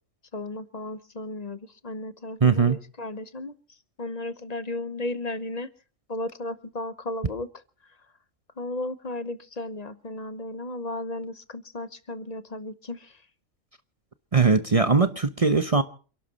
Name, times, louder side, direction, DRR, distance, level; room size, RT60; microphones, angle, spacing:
voice 1, 0.3-3.5 4.0-5.7 6.1-7.5 8.6-13.2, left 2 dB, 35° left, 1.0 m, -34 dB
voice 2, 2.4-2.8 14.3-15.8, right 4 dB, 30° right, 0.8 m, -20 dB
28.5 x 11.5 x 4.1 m
omnidirectional pair, 1.3 m